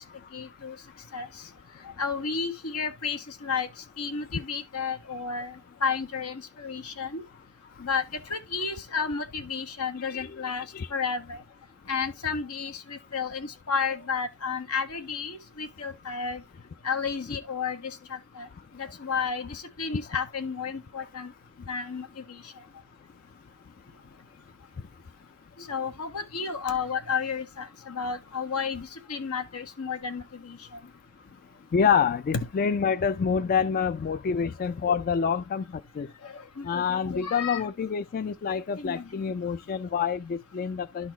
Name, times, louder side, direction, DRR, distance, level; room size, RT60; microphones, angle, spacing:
voice 1, 0.3-0.8 1.1-1.3 2.0-3.7 4.0-7.2 7.8-8.0 8.3-10.7 10.9-11.4 11.9-16.4 16.8-18.5 18.7-21.3 21.7-22.4 25.6-30.6 36.2-37.6 38.8-39.2, left 5 dB, 85° left, 1.4 m, -32 dB
voice 2, 10.1-10.4 10.7-10.9 31.7-36.1 36.6-41.1, left 6 dB, 40° left, 0.3 m, -27 dB
12.0 x 4.1 x 2.9 m
head